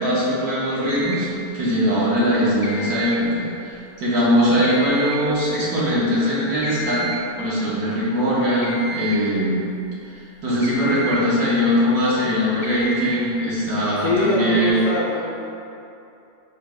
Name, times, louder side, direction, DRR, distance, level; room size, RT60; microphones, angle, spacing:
voice 1, 0.0-7.1 7.4-9.7 10.1-14.8, equal, 70° right, -8 dB, 1.6 m, -21 dB
sound 1, 0.8-1.3 2.6-3.3 4.6-5.3 6.6-7.3 8.6-9.3 10.6-11.3 12.6-13.3 14.6-14.7, right 3 dB, 85° left, 1.4 m, -32 dB
voice 2, 14.0-15.3, left 3 dB, 70° left, -5 dB, 0.8 m, -23 dB
4.5 x 2.2 x 4.6 m, 2.7 s
omnidirectional pair, 1.7 m